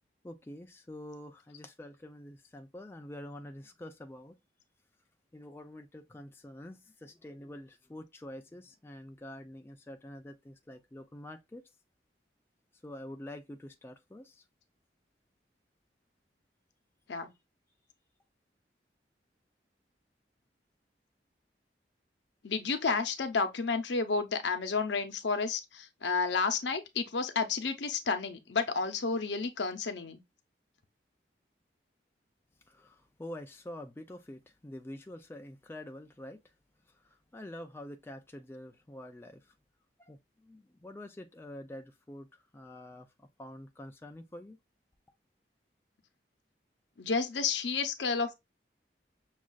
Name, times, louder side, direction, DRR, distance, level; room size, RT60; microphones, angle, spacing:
voice 1, 0.2-4.4 5.3-11.6 12.8-14.4 32.7-36.4 36.9-39.5 40.0-44.6, left 1 dB, 15° left, 0.3 m, -47 dB
voice 2, 22.4-30.2 47.0-48.4, left 4 dB, 80° left, 0.7 m, -31 dB
6.2 x 2.4 x 2.3 m
head